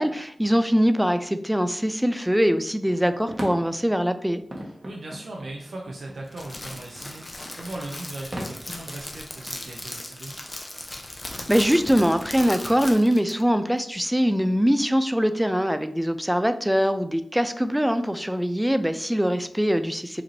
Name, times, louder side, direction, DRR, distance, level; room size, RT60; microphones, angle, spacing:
voice 1, 0.0-4.4 11.5-20.2, equal, 5° right, 10 dB, 0.3 m, -22 dB
sound 1, 2.8-8.5, equal, 35° right, 1.1 m, -39 dB
voice 2, 4.6-10.3, right 2 dB, 75° right, -2 dB, 0.6 m, -38 dB
Crackle, 6.3-13.4, left 1 dB, 30° left, 0.8 m, -37 dB
5.0 x 2.7 x 3.1 m, 0.67 s
cardioid pair, 50°, 0 cm